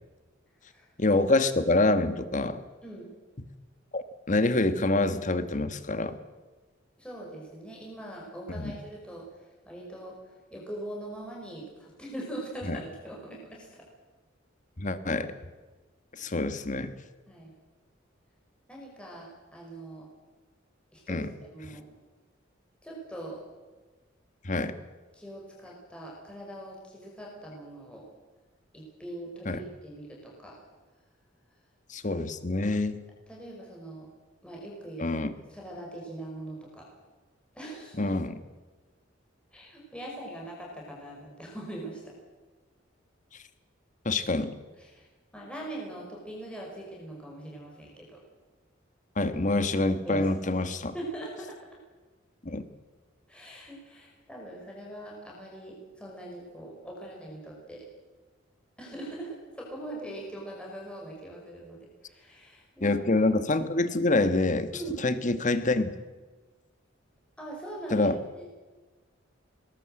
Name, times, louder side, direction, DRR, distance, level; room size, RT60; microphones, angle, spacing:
voice 1, 1.0-2.6 3.9-4.0 4.3-6.1 8.5-8.7 12.7-12.8 14.8-15.3 16.2-16.9 21.1-21.3 21.7-21.8 24.4-24.7 29.4-29.6 31.9-33.0 35.0-35.3 38.0-38.3 44.0-44.5 49.2-50.9 52.4-52.7 62.8-64.7 65.0-65.9 67.9-68.2, left 2 dB, 40° left, 11 dB, 1.4 m, -26 dB
voice 2, 7.0-9.2 9.7-13.9 17.3-17.5 18.7-20.1 20.9-21.9 22.8-23.4 25.1-28.0 28.7-30.6 33.3-34.1 34.4-35.1 35.5-36.9 37.5-38.1 39.5-42.2 44.8-45.1 45.3-48.2 50.0-50.3 50.9-51.6 53.3-57.9 58.8-63.0 64.7-65.0 67.4-68.5, right 1 dB, 5° left, -3 dB, 5.2 m, -42 dB
21.5 x 19.5 x 7.7 m, 1.3 s
head